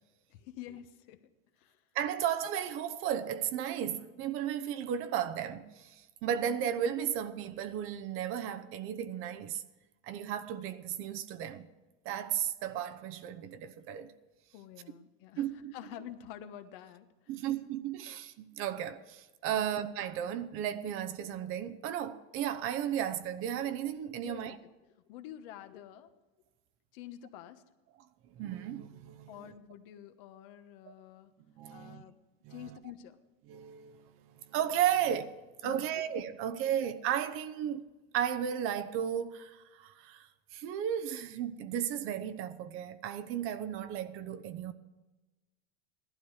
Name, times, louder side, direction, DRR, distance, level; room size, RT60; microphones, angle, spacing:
voice 1, 0.3-1.2 1.6-1.8 14.5-15.5 15.7-17.1 19.5-19.7 24.2-24.6 25.1-26.1 26.9-27.6 29.3-31.3 31.7-32.2 32.5-33.2 35.6-35.9, left 11 dB, 60° left, 1.2 m, -48 dB
voice 2, 1.9-9.6 10.0-11.7 12.0-14.1 15.4-15.7 17.3-24.6 28.4-29.5 30.9-31.0 31.6-32.0 32.4-32.7 33.5-44.7, right 9 dB, 45° right, 0.9 m, -34 dB
16.0 x 12.0 x 4.9 m
supercardioid pair, 140°, 30 cm